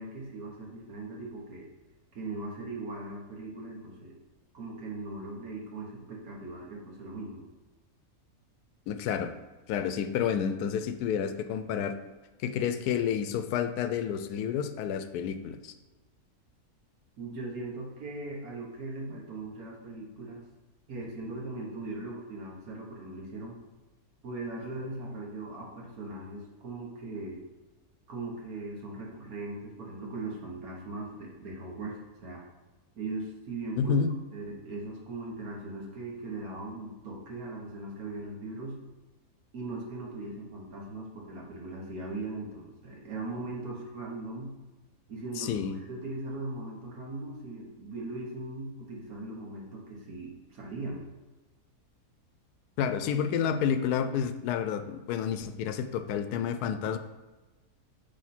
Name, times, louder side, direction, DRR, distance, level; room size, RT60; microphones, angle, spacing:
voice 1, 0.0-1.7 2.1-4.1 4.5-7.4 17.2-20.4 20.9-23.6 24.2-27.4 28.1-32.4 33.0-34.0 34.3-38.8 39.5-44.5 45.1-51.0, right 2 dB, 70° right, -2 dB, 1.7 m, -39 dB
voice 2, 8.9-9.3 9.7-11.9 12.4-15.7 33.8-34.1 45.4-45.8 52.8-57.0, left 7 dB, 85° left, 10 dB, 1.1 m, -30 dB
8.6 x 3.3 x 4.3 m, 1.2 s
omnidirectional pair, 1.6 m